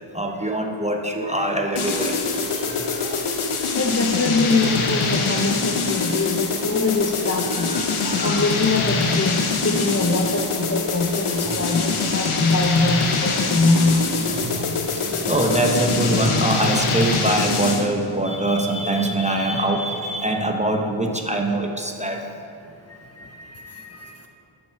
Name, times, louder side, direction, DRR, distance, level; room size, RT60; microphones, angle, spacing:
voice 1, 0.1-3.2 6.7-6.9 7.5-8.5 11.1-11.8 12.1-12.3 12.8-12.9 13.2-22.2, right 1 dB, 15° right, 2 dB, 0.8 m, -24 dB
sound 1, 1.8-18.0, left 4 dB, 85° left, 0.8 m, -24 dB
voice 2, 3.8-7.8 8.2-14.1 23.2-24.3, left 3 dB, 30° left, 3 dB, 0.6 m, -23 dB
8.8 x 5.5 x 5.8 m, 2.7 s
wide cardioid pair, 70°, 48 cm